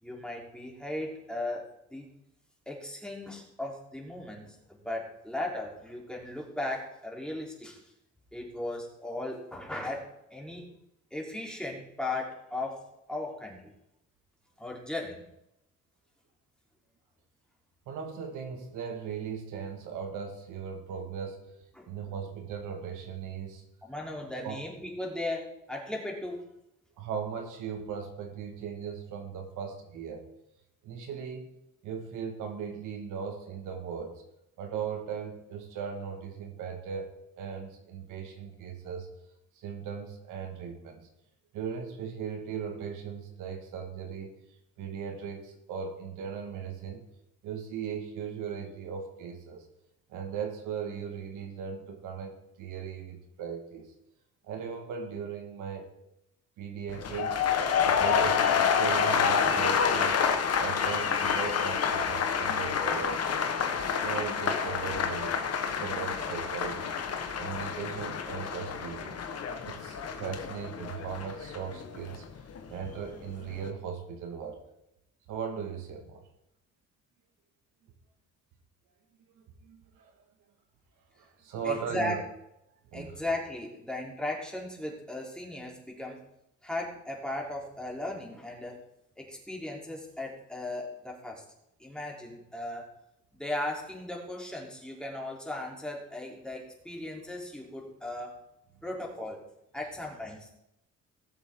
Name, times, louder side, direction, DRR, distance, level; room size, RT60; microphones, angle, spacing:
voice 1, 0.0-2.1 2.7-7.8 8.3-10.7 11.1-13.7 14.6-15.2 21.8-22.1 23.8-26.4 81.6-82.2 82.9-86.2 86.6-88.8 89.2-91.4 91.8-92.9 93.3-98.4 98.8-99.4 99.7-100.5, left 1 dB, 5° left, -2 dB, 3.4 m, -37 dB
voice 2, 17.9-21.5 21.9-23.6 24.4-24.6 27.0-30.3 30.8-31.5 31.8-34.2 34.6-39.1 39.6-41.1 41.5-44.4 44.8-47.0 47.4-49.7 50.1-53.9 54.4-55.9 56.6-57.4 57.8-60.3 60.6-63.3 63.7-67.0 67.4-69.3 69.6-72.2 72.7-74.6 75.3-76.2 79.6-80.1 81.2-82.2 82.9-83.2, right 7 dB, 90° right, 4 dB, 1.7 m, -38 dB
sound 1, 56.9-73.0 73.3-73.7, left 6 dB, 55° left, 1.2 m, -28 dB
18.5 x 7.4 x 3.7 m, 0.83 s
cardioid pair, 90°, 30 cm